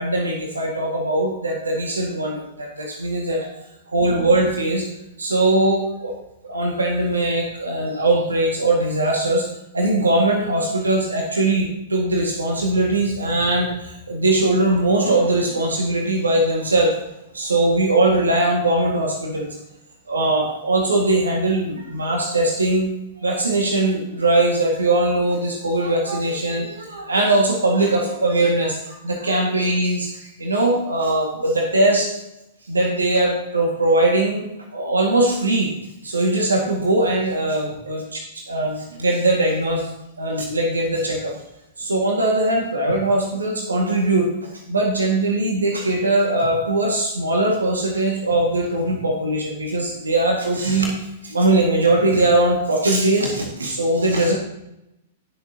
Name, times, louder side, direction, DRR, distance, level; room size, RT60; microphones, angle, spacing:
voice 1, 0.0-3.5 3.9-4.9 5.2-6.2 6.4-9.5 9.7-16.9 17.3-19.5 20.1-22.9 23.2-32.1 32.7-34.5 34.7-35.7 36.0-39.9 40.2-41.3 41.8-44.3 44.7-50.9 51.2-54.3, right 2 dB, 85° right, 1 dB, 1.8 m, -20 dB
18.5 x 6.8 x 2.8 m, 0.86 s
figure-of-eight pair, 105°, 0 cm